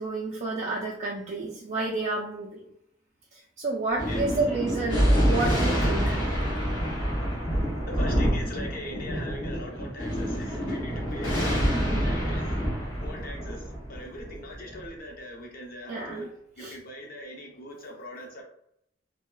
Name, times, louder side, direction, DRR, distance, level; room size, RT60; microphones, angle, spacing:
voice 1, 0.0-2.6 3.6-6.2 11.3-11.4 15.9-16.3 16.6-16.8, right 3 dB, 40° right, -3 dB, 0.3 m, -30 dB
Thunder, 3.9-14.8, equal, 70° left, 1.0 m, -27 dB
voice 2, 7.9-12.6 13.0-16.3 16.6-18.4, left 1 dB, 50° left, 0 dB, 0.6 m, -41 dB
2.7 x 2.2 x 2.2 m, 0.73 s
head